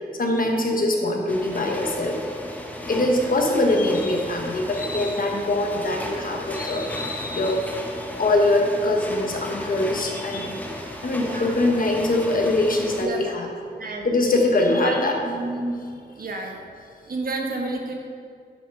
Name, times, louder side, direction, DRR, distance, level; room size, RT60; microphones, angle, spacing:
voice 1, 0.2-2.2 2.9-13.5 14.0-15.2, left 2 dB, 55° left, 1 dB, 1.3 m, -23 dB
sound 1, 1.3-13.1, left 1 dB, 10° left, 0.9 m, -35 dB
voice 2, 11.1-11.6 13.0-13.2 13.8-14.4 14.7-15.0 15.2-15.7 16.2-16.6 17.1-17.9, right 2 dB, 60° right, 1 dB, 1.3 m, -30 dB
8.7 x 6.5 x 5.7 m, 2.3 s
wide cardioid pair, 145°, 17 cm